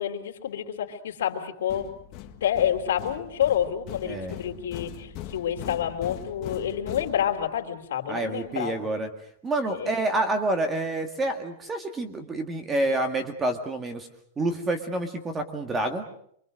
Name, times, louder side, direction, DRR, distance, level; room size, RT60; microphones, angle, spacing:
voice 1, 0.0-1.9 2.4-8.7 9.7-10.0, left 9 dB, 90° left, 3 dB, 3.5 m, -28 dB
sound 1, 1.7-7.7, left 11 dB, 30° left, 1.7 m, -41 dB
voice 2, 4.0-4.4 8.1-9.1 9.4-14.1 14.4-16.1, right 2 dB, 15° right, 7 dB, 1.9 m, -28 dB
27.5 x 24.0 x 6.5 m, 0.67 s
supercardioid pair, 170°, 0 cm